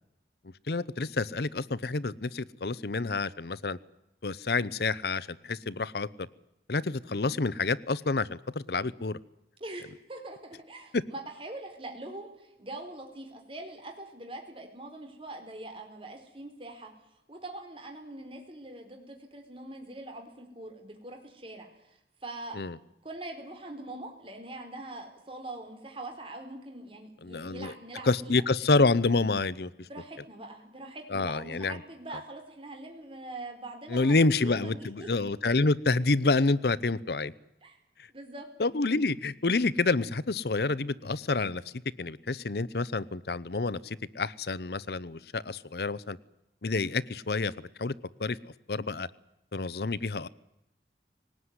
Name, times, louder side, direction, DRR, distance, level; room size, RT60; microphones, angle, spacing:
voice 1, 0.7-3.8 4.2-6.3 6.7-9.2 10.9-11.0 22.5-22.8 27.2-27.7 28.1-29.9 31.1-31.8 33.9-37.3 38.6-41.6 42.0-46.2 46.6-47.5 47.8-47.9 48.2-49.1 49.5-50.3, left 3 dB, 60° left, 20 dB, 0.8 m, -28 dB
voice 2, 9.6-16.9 17.3-22.6 23.0-28.4 29.9-35.1 37.6-37.8 38.1-38.5, right 2 dB, 30° right, 3 dB, 4.5 m, -43 dB
20.0 x 19.0 x 9.7 m, 0.87 s
head